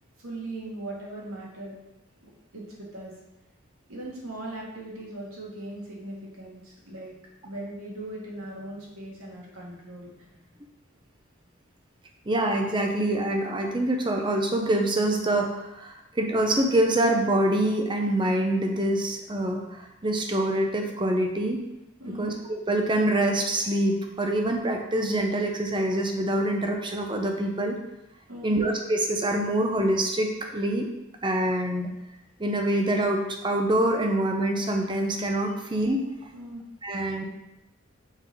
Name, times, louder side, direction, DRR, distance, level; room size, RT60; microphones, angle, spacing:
voice 1, 0.2-1.7 2.2-3.1 3.9-7.2 7.4-10.6 22.0-22.3 28.3-28.6 36.3-36.6, right 1 dB, 85° right, -4 dB, 1.8 m, -39 dB
voice 2, 12.3-21.6 22.2-27.8 28.4-30.9 31.2-31.9 32.4-36.0 36.8-37.2, right 1 dB, 20° right, 2 dB, 0.6 m, -25 dB
5.7 x 3.9 x 4.5 m, 0.93 s
head